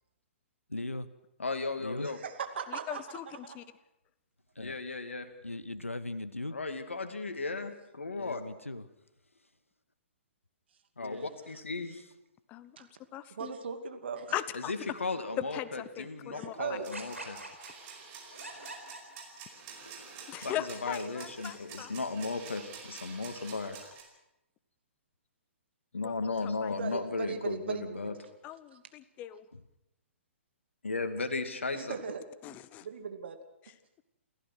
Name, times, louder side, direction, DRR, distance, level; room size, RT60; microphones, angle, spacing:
voice 1, 0.7-1.1 1.8-2.1 4.5-4.8 5.4-6.6 8.2-8.9 11.0-11.3 11.9-12.0 29.5-29.6, left 2 dB, 85° left, 14 dB, 1.1 m, -39 dB
voice 2, 1.4-2.2 4.6-5.3 6.5-8.4 11.0-12.0 14.5-17.4 20.0-23.9 25.9-28.1 30.8-32.0, left 3 dB, 70° left, 7 dB, 2.6 m, -36 dB
voice 3, 2.0-3.6 12.8-12.9 13.3-14.3 16.3-16.9 21.1-21.2 26.8-28.1 28.7-28.8 31.7-32.2 32.5-33.4, right 6 dB, 55° right, 6 dB, 2.5 m, -39 dB
voice 4, 2.7-3.6 12.5-13.5 14.3-14.7 15.4-16.8 20.3-21.9 26.0-26.7 28.4-29.4 32.4-32.9, left 12 dB, 20° left, 16 dB, 0.9 m, -39 dB
sound 1, 16.8-24.0, right 6 dB, 30° right, 5.0 m, -48 dB
sound 2, 16.9-19.7, right 2 dB, 85° right, 4.6 m, -45 dB
29.0 x 14.5 x 6.3 m, 0.91 s
figure-of-eight pair, 120°, 7 cm